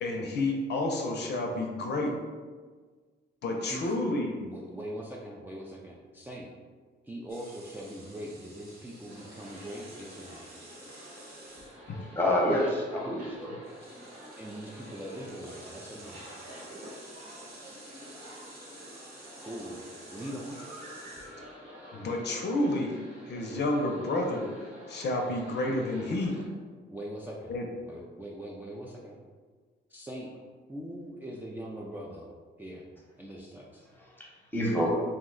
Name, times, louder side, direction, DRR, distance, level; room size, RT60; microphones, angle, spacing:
voice 1, 0.0-2.1 3.4-4.4 11.9-12.0 21.9-23.0 23.3-24.5 24.9-26.4 27.5-27.7, left 2 dB, 55° left, 1 dB, 0.5 m, -30 dB
voice 2, 3.6-4.0 4.4-6.5 7.0-10.5 14.4-16.2 19.4-19.8 20.1-20.6 26.9-27.5 27.9-29.2 29.9-30.4 30.7-32.3 32.6-32.9 33.2-33.8, right 1 dB, 10° right, -4 dB, 0.3 m, -41 dB
sound 1, 7.3-12.1 13.3-13.4 13.6-21.6, right 2 dB, 50° right, 1.0 m, -51 dB
sound 2, 9.1-26.5, equal, 75° right, 1.3 m, -48 dB
voice 3, 12.1-13.5 34.0-34.9, left 1 dB, 10° left, -3 dB, 0.9 m, -28 dB
2.7 x 2.1 x 3.7 m, 1.5 s
cardioid pair, 90°, 20 cm